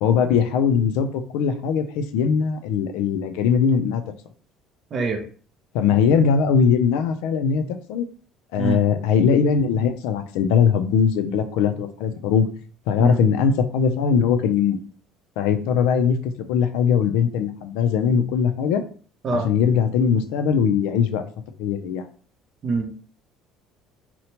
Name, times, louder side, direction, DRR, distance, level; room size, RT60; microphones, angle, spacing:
voice 1, 0.0-4.0 5.7-8.0 8.5-12.5 12.9-14.8 15.4-18.8 19.3-21.3 21.6-22.1, left 7 dB, 90° left, 9 dB, 0.3 m, -20 dB
voice 2, 4.9-5.2 8.6-8.8 13.0-13.2 19.2-19.5 22.6-23.0, right 3 dB, 30° right, 4 dB, 0.4 m, -24 dB
2.8 x 2.1 x 2.9 m, 0.43 s
cardioid pair, 165°, 0 cm